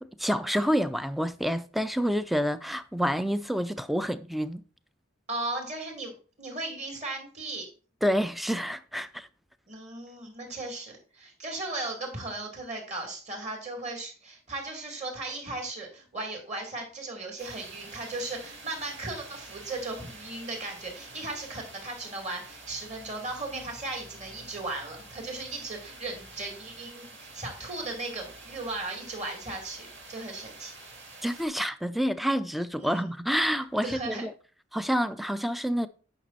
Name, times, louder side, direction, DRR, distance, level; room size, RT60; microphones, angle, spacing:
voice 1, 0.0-4.6 8.0-9.3 31.2-34.3 34.7-35.9, equal, ahead, 0.4 m, -28 dB
voice 2, 5.3-6.1 6.4-7.7 9.7-30.7 32.8-33.0 33.8-34.3, right 2 dB, 35° right, 2.7 m, -37 dB
sound 1, 17.4-31.5, right 2 dB, 70° right, 3.3 m, -48 dB
9.1 x 5.9 x 4.2 m
head